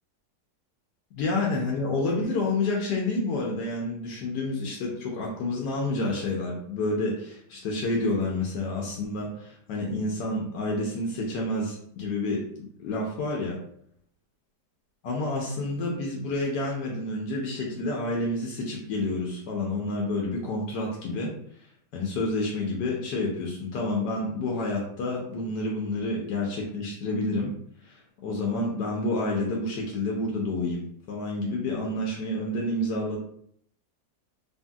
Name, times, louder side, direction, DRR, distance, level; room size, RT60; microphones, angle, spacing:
voice 1, 1.1-13.6 15.0-21.3 21.9-27.5 27.8-33.2, left 2 dB, 80° left, -2 dB, 1.2 m, -29 dB
3.0 x 2.6 x 2.2 m, 0.66 s
omnidirectional pair, 1.8 m